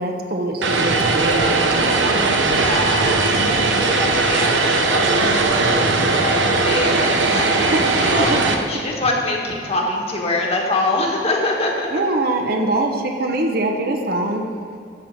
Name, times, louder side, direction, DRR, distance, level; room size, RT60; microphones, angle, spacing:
voice 1, 0.0-1.7 7.7-7.8 8.2-8.4 11.9-14.4, right 2 dB, 55° right, 3 dB, 1.0 m, -22 dB
Vehicle, 0.6-8.5, right 3 dB, 85° right, 1.0 m, -18 dB
voice 2, 2.6-11.9, left 2 dB, 35° left, -1 dB, 1.5 m, -25 dB
12.5 x 4.4 x 7.7 m, 2.3 s
head